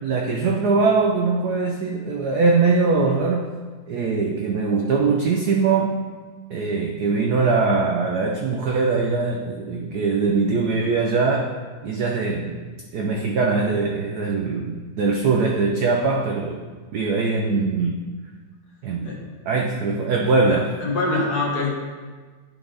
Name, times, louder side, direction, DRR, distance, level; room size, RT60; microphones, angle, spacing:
voice 1, 0.0-3.5 3.9-5.9 6.5-11.5 11.8-12.6 12.9-16.6 16.9-17.9 18.8-19.1 19.5-20.7, right 4 dB, 80° right, 0 dB, 0.8 m, -21 dB
voice 2, 20.5-21.9, left 2 dB, 55° left, -2 dB, 1.6 m, -25 dB
10.5 x 4.0 x 3.8 m, 1.4 s
omnidirectional pair, 2.3 m